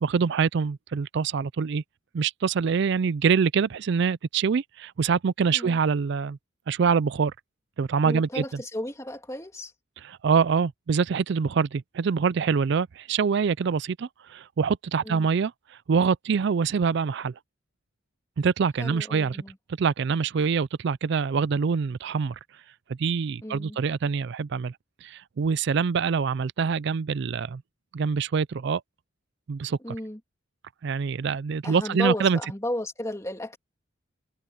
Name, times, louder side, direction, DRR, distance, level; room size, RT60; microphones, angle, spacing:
voice 1, 0.0-1.8 2.1-6.4 6.7-7.3 7.8-8.6 10.0-15.5 15.9-17.3 18.4-19.4 19.8-22.4 22.9-24.7 25.0-27.6 27.9-28.8 29.5-30.0 30.8-32.4, right 6 dB, 60° right, 0.4 m, -25 dB
voice 2, 5.5-5.8 8.0-9.7 15.0-15.3 18.8-19.5 23.4-23.8 29.8-30.2 31.6-33.6, left 1 dB, 15° left, 3.0 m, -33 dB
head